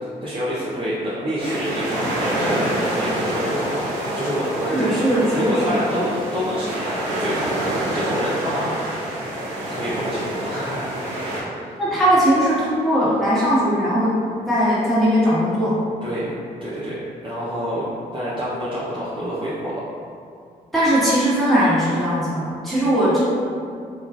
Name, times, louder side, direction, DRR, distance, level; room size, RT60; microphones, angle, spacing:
voice 1, 0.2-3.8 4.1-5.0 5.3-9.2 9.7-11.8 16.0-16.3 16.6-19.8, equal, 30° right, -9 dB, 0.7 m, -27 dB
sound 1, 1.4-11.4, right 1 dB, 90° right, 0.5 m, -27 dB
voice 2, 4.7-5.6 11.8-14.2 14.5-15.8 20.7-23.2, equal, ahead, -10 dB, 1.5 m, -19 dB
3.0 x 2.3 x 2.4 m, 2.3 s
supercardioid pair, 45°, 18 cm